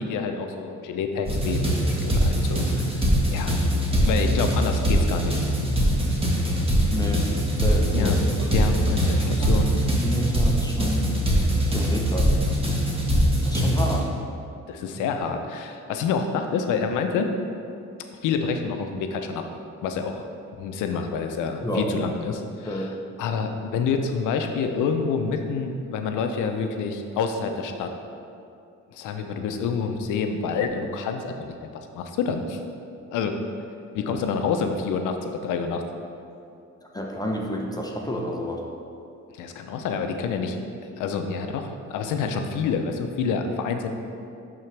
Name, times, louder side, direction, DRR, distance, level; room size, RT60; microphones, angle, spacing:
voice 1, 0.0-3.0 3.3-3.6 4.0-5.4 7.9-8.2 8.5-9.7 14.7-17.3 18.2-19.4 19.8-20.3 20.6-22.9 23.2-27.9 28.9-32.6 33.1-33.4 33.9-35.8 39.3-40.6 41.0-43.9, left 5 dB, 90° left, 6 dB, 0.6 m, -28 dB
sound 1, 1.3-14.0, equal, 20° right, 1.4 m, -22 dB
voice 2, 6.9-7.2 7.5-8.1 8.4-8.5 9.4-9.5 9.9-11.1 11.7-12.3 13.4-14.1 21.6-21.9 22.6-22.9 36.9-38.6, equal, 15° left, -1 dB, 0.7 m, -29 dB
10.5 x 3.9 x 3.3 m, 2.5 s
cardioid pair, 90°, 30 cm